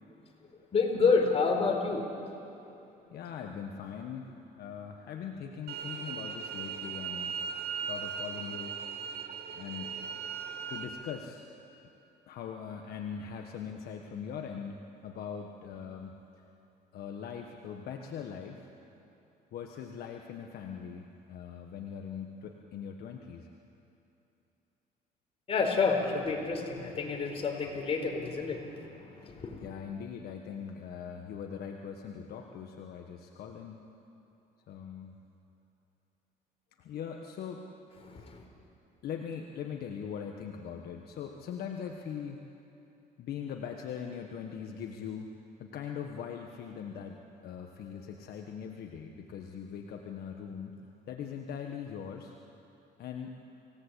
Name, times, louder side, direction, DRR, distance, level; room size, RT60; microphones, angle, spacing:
voice 1, 0.7-2.1 25.5-29.7 38.0-38.4, left 4 dB, 35° left, 1 dB, 4.3 m, -29 dB
voice 2, 3.1-7.4 7.9-8.8 9.5-9.9 10.7-11.4 12.3-16.2 16.9-18.7 19.5-23.5 29.2-29.3 29.6-33.9 34.7-35.1 36.8-37.6 38.1-38.3 39.0-42.4 43.2-45.3 45.6-52.3 53.0-53.4, left 7 dB, 65° left, 3 dB, 1.5 m, -41 dB
sound 1, 5.7-10.8, right 7 dB, 70° right, 2.4 m, -38 dB
27.0 x 17.5 x 8.4 m, 2.9 s
cardioid pair, 110°, 17 cm